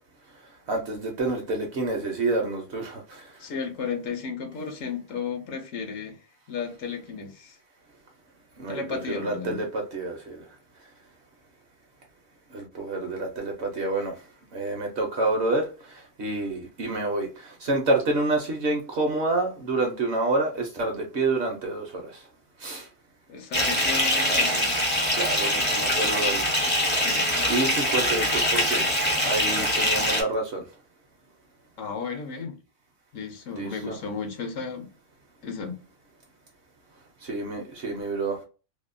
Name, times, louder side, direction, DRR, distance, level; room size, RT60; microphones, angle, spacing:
voice 1, 0.7-3.2 8.6-8.8 9.2-9.6 9.9-10.4 12.5-14.1 14.5-15.6 16.2-22.0 22.6-22.8 25.2-26.5 27.5-30.6 33.6-34.0 37.3-38.4, right 2 dB, 60° right, 0.8 m, -28 dB
voice 2, 3.4-6.2 6.5-7.6 8.7-9.6 23.3-24.8 26.9-27.3 31.8-32.6 33.1-34.9 35.4-35.8, left 5 dB, 70° left, 0.9 m, -34 dB
Bathtub (filling or washing) / Fill (with liquid), 23.5-30.2, left 1 dB, 15° left, 0.4 m, -23 dB
2.7 x 2.1 x 2.4 m
omnidirectional pair, 1.5 m